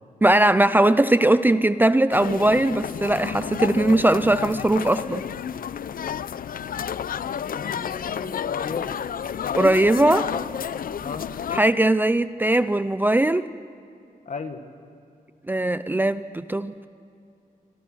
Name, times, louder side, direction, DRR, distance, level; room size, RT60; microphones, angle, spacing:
voice 1, 0.2-5.2 9.6-10.3 11.5-13.5 15.5-16.9, right 1 dB, 15° right, 13 dB, 0.5 m, -20 dB
sound 1, 2.1-11.6, left 8 dB, 70° left, 0.6 m, -31 dB
voice 2, 7.5-9.0 10.2-10.4 11.0-11.3 14.3-14.6, left 5 dB, 55° left, 7 dB, 1.8 m, -34 dB
27.0 x 26.0 x 6.3 m, 2.6 s
wide cardioid pair, 180°, 15 cm